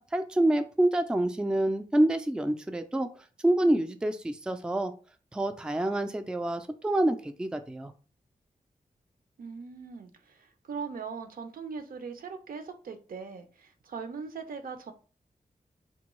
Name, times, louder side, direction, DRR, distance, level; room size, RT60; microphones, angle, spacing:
voice 1, 0.0-3.1 3.4-4.9 5.3-7.9, right 1 dB, 5° right, 0.3 m, -27 dB
voice 2, 9.4-14.9, right 5 dB, 75° right, 0.6 m, -40 dB
3.5 x 2.2 x 3.0 m
wide cardioid pair, 85°, 15 cm